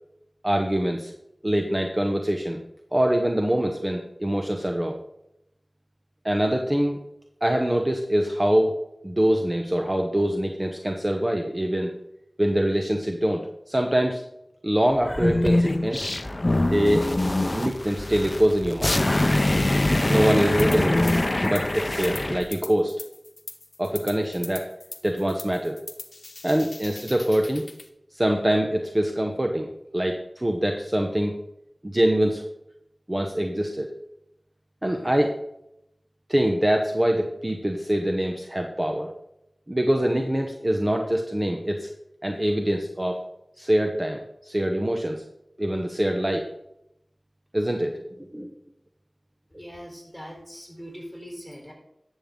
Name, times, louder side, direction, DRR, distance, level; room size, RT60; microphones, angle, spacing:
voice 1, 0.4-1.1 1.4-2.6 2.9-5.0 6.2-7.0 7.4-8.7 9.0-11.9 12.4-14.2 14.6-16.1 16.7-17.2 17.5-19.0 20.1-21.1 21.4-22.9 23.8-24.7 25.0-25.8 26.4-27.6 28.1-31.3 31.8-32.4 33.1-33.9 34.8-35.3 36.3-39.1 39.7-41.9 42.2-43.2 43.6-45.2 45.6-46.5 47.5-48.0 48.3-48.5, right 1 dB, 30° right, 3 dB, 0.9 m, -24 dB
sound 1, 15.0-22.4, left 1 dB, 45° left, 0.6 m, -24 dB
sound 2, 20.6-21.2 21.4-27.9, left 3 dB, 80° left, 0.9 m, -41 dB
voice 2, 49.5-51.7, equal, 5° left, 1 dB, 3.6 m, -41 dB
11.0 x 7.2 x 3.8 m, 0.82 s
wide cardioid pair, 40°, 0 cm